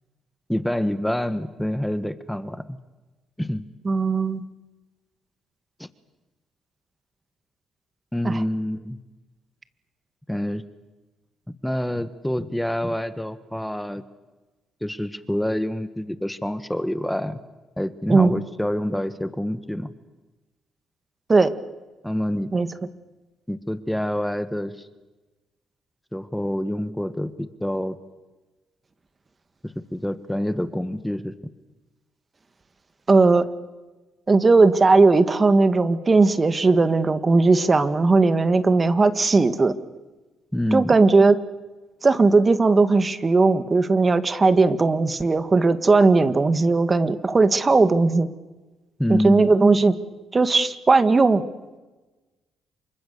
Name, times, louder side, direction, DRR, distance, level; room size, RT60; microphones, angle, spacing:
voice 1, 0.5-2.8 3.4-3.6 5.8-5.9 8.1-9.0 10.3-10.6 11.5-14.0 14.8-17.4 17.8-19.9 22.0-22.5 23.5-24.9 26.1-28.0 29.6-31.3 40.5-40.9 49.0-49.5, left 1 dB, 5° left, 12 dB, 1.4 m, -27 dB
voice 2, 3.9-4.4 8.2-8.4 18.1-18.3 21.3-21.5 22.5-22.7 33.1-33.5 34.3-39.7 40.7-41.4 42.0-48.3 49.1-50.0 50.3-51.4, right 3 dB, 30° right, 11 dB, 1.8 m, -18 dB
28.0 x 24.5 x 6.9 m, 1.2 s
supercardioid pair, 70°, 0 cm